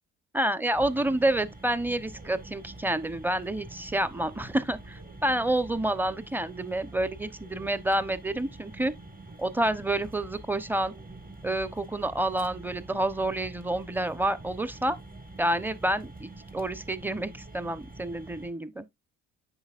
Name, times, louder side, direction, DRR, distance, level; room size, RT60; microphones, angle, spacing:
voice 1, 0.3-8.9 9.4-10.9 11.4-15.0 15.4-18.9, right 1 dB, 5° right, 0.8 m, -28 dB
sound 1, 0.7-18.5, right 2 dB, 30° right, 1.9 m, -46 dB
7.9 x 6.0 x 2.5 m
cardioid pair, 90°, 30 cm